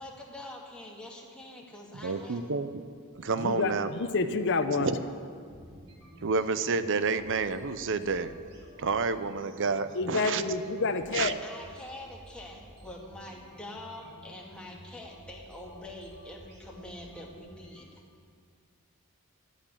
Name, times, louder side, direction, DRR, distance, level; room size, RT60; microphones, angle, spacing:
voice 1, 0.0-2.4 10.0-10.2 11.4-18.0, left 1 dB, 5° left, -2 dB, 2.1 m, -45 dB
voice 2, 1.9-2.8 3.1-3.9 4.7-5.0 6.2-8.3 8.8-10.4 11.1-11.3, right 4 dB, 60° right, 12 dB, 0.7 m, -29 dB
sound 1, 2.6-17.8, equal, 80° right, 4.2 m, -53 dB
voice 3, 3.4-4.9 9.9-11.4, left 4 dB, 55° left, 8 dB, 0.8 m, -28 dB
12.5 x 9.0 x 10.0 m, 2.2 s
head